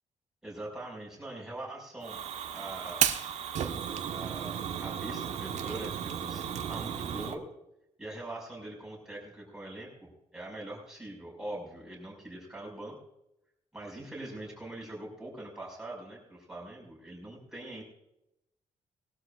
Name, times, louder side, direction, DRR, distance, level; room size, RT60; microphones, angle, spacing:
voice 1, 0.4-2.2 2.5-3.1 4.1-7.5 8.0-13.0 13.7-17.8, right 1 dB, 5° right, -3 dB, 5.6 m, -43 dB
Fire, 2.0-7.4, right 8 dB, 70° right, 1.3 m, -33 dB
21.5 x 12.5 x 2.5 m, 0.86 s
wide cardioid pair, 175°, 12 cm